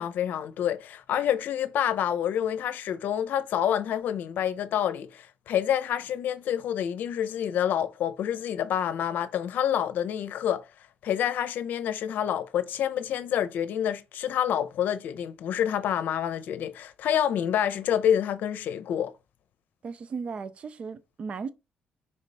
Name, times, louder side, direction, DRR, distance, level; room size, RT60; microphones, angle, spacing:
voice 1, 0.0-10.6 11.0-19.1, left 9 dB, 70° left, 0.7 m, -28 dB
voice 2, 19.8-21.5, right 5 dB, 40° right, 0.5 m, -36 dB
5.1 x 4.4 x 4.2 m
cardioid pair, 145°, 3 cm